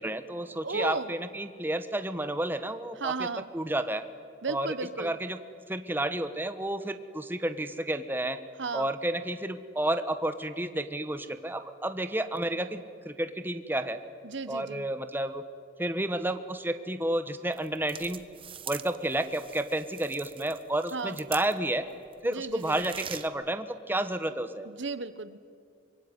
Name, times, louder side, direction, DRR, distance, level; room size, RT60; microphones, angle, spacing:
voice 1, 0.0-3.3 3.5-4.0 4.5-4.7 5.0-5.4 5.7-8.4 8.7-14.0 14.5-15.4 15.8-18.2 18.7-21.9 22.2-24.7, right 1 dB, 10° right, 10 dB, 1.0 m, -31 dB
voice 2, 0.6-1.1 3.0-3.5 4.4-5.2 8.6-8.9 14.2-14.8 20.9-21.2 22.2-22.8 24.6-25.4, right 4 dB, 70° right, 14 dB, 1.2 m, -34 dB
sound 1, 17.5-21.8 22.1-23.3, right 8 dB, 30° right, 1.0 m, -43 dB
24.5 x 22.5 x 9.8 m, 2.2 s
head